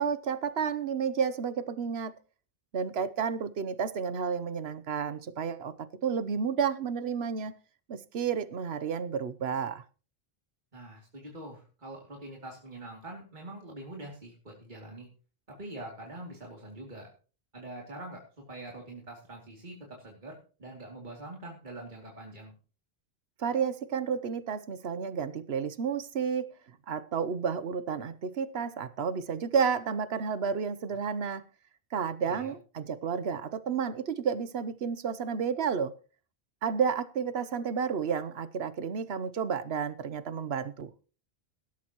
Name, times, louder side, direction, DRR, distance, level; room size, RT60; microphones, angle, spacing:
voice 1, 0.0-2.2 2.7-7.5 7.9-9.8 23.4-26.5 26.9-31.4 31.9-35.9 36.6-40.9, right 6 dB, 85° right, 1.1 m, -31 dB
voice 2, 10.7-15.1 15.6-17.1 17.5-18.2 18.5-22.5 32.2-32.5, right 1 dB, 50° right, 2.9 m, -44 dB
17.5 x 13.0 x 3.0 m
omnidirectional pair, 1.0 m